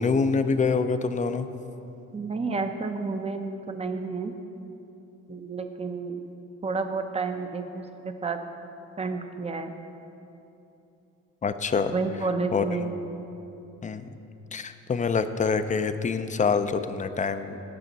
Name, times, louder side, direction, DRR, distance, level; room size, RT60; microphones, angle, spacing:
voice 1, 0.0-1.5 11.4-11.9 12.5-12.9 13.8-14.0 14.5-17.6, left 5 dB, 25° left, 10 dB, 0.5 m, -26 dB
voice 2, 2.1-4.3 5.3-6.2 6.6-8.4 9.0-9.8 11.9-12.9, right 4 dB, 20° right, 7 dB, 0.7 m, -30 dB
16.5 x 5.6 x 4.1 m, 3.0 s
cardioid pair, 90°, 30 cm